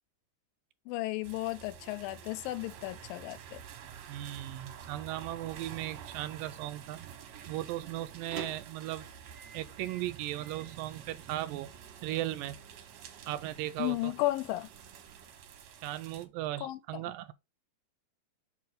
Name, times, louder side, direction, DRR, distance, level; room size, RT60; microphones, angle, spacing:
voice 1, 0.9-3.6 13.8-14.7 16.6-17.0, left 17 dB, 85° left, 2.3 m, -34 dB
sound 1, 1.2-16.3, right 8 dB, 65° right, 1.9 m, -49 dB
voice 2, 4.1-7.1 7.5-9.1 9.5-11.7 12.0-12.6 13.3-14.1 15.8-17.3, right 14 dB, 80° right, 2.2 m, -37 dB
Microwave oven, 7.1-15.3, right 7 dB, 45° right, 1.7 m, -51 dB
6.2 x 3.8 x 5.0 m
omnidirectional pair, 4.1 m